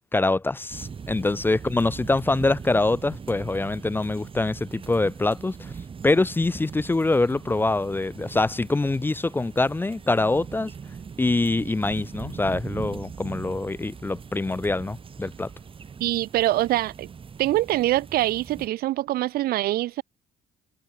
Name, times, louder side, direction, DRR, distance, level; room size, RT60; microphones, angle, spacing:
voice 1, 0.1-5.7 6.0-10.7 11.2-15.5, left 2 dB, 10° left, 0.5 m, -24 dB
sound 1, 0.7-18.7, right 6 dB, 30° right, 1.9 m, -40 dB
voice 2, 16.0-17.1 17.4-20.0, right 15 dB, 65° right, 0.5 m, -24 dB
cardioid pair, 110°, 17 cm